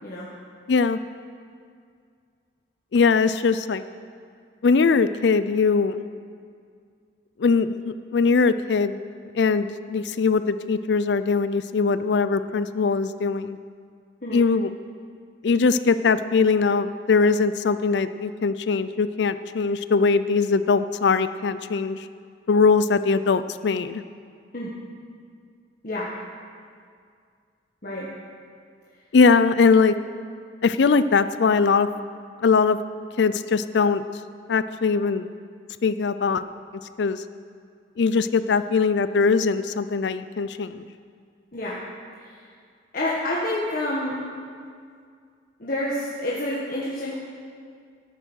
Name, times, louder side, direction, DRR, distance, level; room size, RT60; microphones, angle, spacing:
voice 1, 0.7-1.0 2.9-3.8 4.6-6.0 7.4-9.0 9.3-13.6 14.3-14.7 15.4-22.1 22.5-24.0 29.1-30.0 30.6-31.9 32.4-32.8 33.2-34.0 34.5-35.3 35.8-36.4 37.0-37.2 38.0-40.8, left 4 dB, 75° left, 13 dB, 0.4 m, -21 dB
voice 2, 42.9-44.2 45.6-47.1, left 1 dB, 50° left, -6 dB, 1.6 m, -28 dB
13.5 x 8.9 x 6.3 m, 2.2 s
head